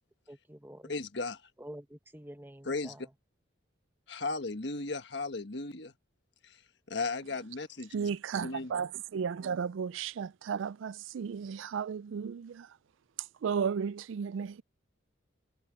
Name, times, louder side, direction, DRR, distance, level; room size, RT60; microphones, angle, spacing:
voice 1, 0.3-0.9 1.6-3.0, equal, 10° right, 1.0 m, -48 dB
voice 2, 0.9-1.4 2.6-3.0 4.1-5.9 6.4-6.6 6.9-8.1 8.4-8.7, left 3 dB, 60° left, 1.4 m, -36 dB
voice 3, 7.9-12.7 13.4-14.6, right 6 dB, 75° right, 0.3 m, -34 dB
head